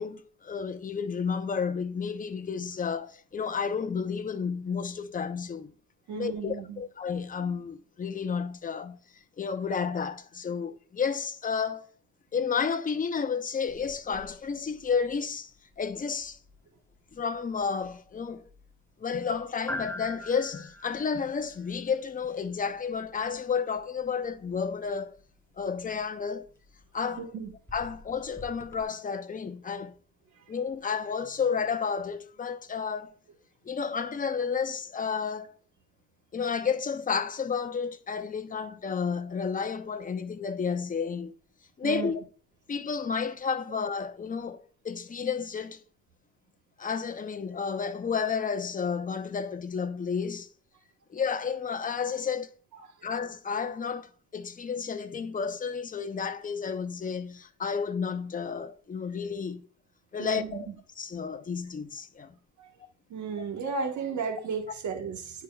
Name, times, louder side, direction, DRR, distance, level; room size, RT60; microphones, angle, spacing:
voice 1, 0.0-5.7 6.1-9.0 9.4-11.9 12.3-15.5 15.8-16.4 17.1-18.5 19.0-25.2 25.6-26.4 26.9-27.3 27.7-29.9 30.5-33.2 33.6-35.5 36.3-41.3 41.8-42.2 42.7-45.8 46.8-50.5 51.1-52.5 53.0-59.7 60.1-60.7 61.0-62.4, left 6 dB, 25° left, 0.7 m, -31 dB
voice 2, 6.1-6.8 27.2-27.5 41.8-42.1 60.2-60.7 62.6-62.7 63.1-65.4, right 5 dB, 70° right, 1.4 m, -34 dB
sound 1, 13.7-28.8, left 1 dB, 10° left, 1.0 m, -47 dB
10.5 x 4.6 x 2.4 m
cardioid pair, 90°, 30 cm